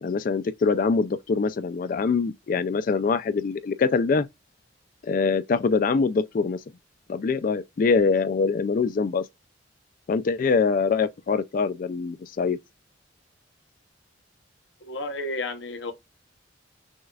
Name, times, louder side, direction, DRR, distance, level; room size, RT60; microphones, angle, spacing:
voice 1, 0.0-4.3 5.0-6.6 7.1-9.2 10.1-12.6, left 4 dB, 45° left, 0.3 m, -24 dB
voice 2, 14.8-15.9, left 2 dB, 75° left, 0.8 m, -32 dB
6.3 x 2.4 x 2.2 m
head